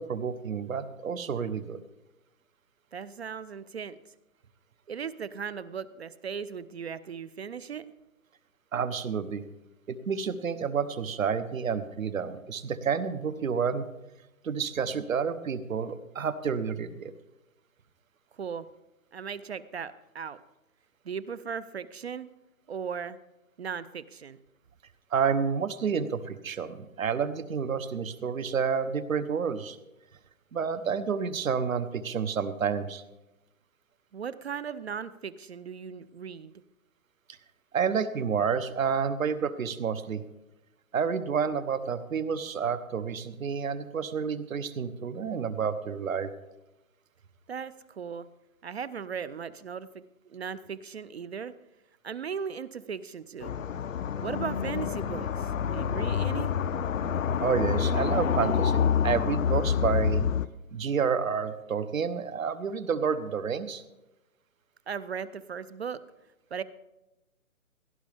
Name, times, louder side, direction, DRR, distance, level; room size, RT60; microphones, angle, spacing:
voice 1, 0.0-1.8 8.7-9.4 9.9-13.9 14.4-17.1 25.1-29.8 30.5-33.0 37.7-40.2 40.9-46.3 57.4-60.3 60.7-63.8, right 6 dB, 70° right, 12 dB, 1.1 m, -29 dB
voice 2, 2.9-4.0 4.9-7.9 18.4-18.7 19.1-20.4 21.0-22.3 22.7-23.2 23.6-24.4 34.1-36.5 47.5-48.3 48.6-51.5 52.0-53.6 54.2-56.5 64.9-66.0 66.5-66.6, right 6 dB, 50° right, 16 dB, 0.5 m, -37 dB
sound 1, 53.4-60.5, left 7 dB, 65° left, 0.6 m, -27 dB
17.5 x 10.5 x 3.5 m, 0.99 s
hypercardioid pair, 150°, 43 cm